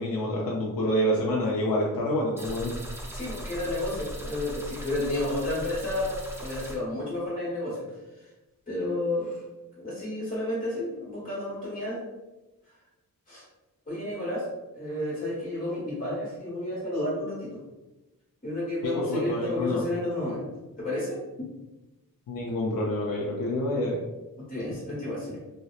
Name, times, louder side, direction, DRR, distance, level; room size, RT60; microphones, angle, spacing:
voice 1, 0.0-2.8 18.8-19.8 22.3-24.0, equal, 85° left, -3 dB, 0.5 m, -27 dB
sound 1, 2.4-6.8, right 1 dB, 10° right, 0.4 m, -38 dB
voice 2, 3.1-7.8 8.7-9.4 9.8-12.0 13.3-13.4 13.9-14.5 14.7-17.6 18.4-20.4 20.8-21.2 24.5-25.4, left 1 dB, 25° left, -9 dB, 1.2 m, -31 dB
2.8 x 2.1 x 2.3 m, 1.1 s
wide cardioid pair, 120°, 34 cm